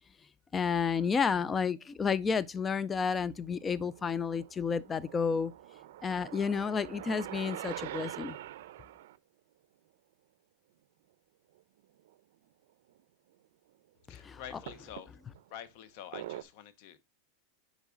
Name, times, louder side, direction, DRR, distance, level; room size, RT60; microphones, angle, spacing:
voice 1, 0.5-5.5 6.0-8.4 14.1-14.4, left 6 dB, 15° left, 0.3 m, -31 dB
sound 1, 0.8-1.4 2.2-3.1 3.5-9.2 11.6-11.7 12.0-12.1 13.0-13.1 14.7-15.5 16.1-16.4, right 14 dB, 70° right, 0.7 m, -45 dB
voice 2, 14.1-15.2 15.5-17.0, left 10 dB, 50° left, 0.9 m, -47 dB
10.0 x 4.0 x 3.8 m
supercardioid pair, 165°, 0 cm